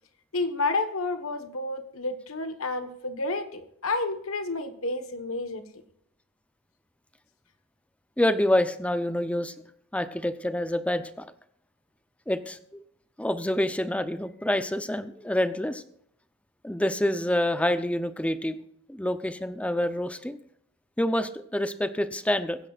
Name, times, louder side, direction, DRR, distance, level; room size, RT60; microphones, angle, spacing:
voice 1, 0.3-5.6, left 3 dB, 70° left, 9 dB, 1.3 m, -30 dB
voice 2, 8.2-9.5 9.9-11.3 12.3-12.8 13.2-15.8 16.6-18.6 18.9-20.4 21.0-22.6, left 1 dB, 5° left, 11 dB, 0.6 m, -27 dB
22.0 x 10.5 x 2.5 m, 0.71 s
head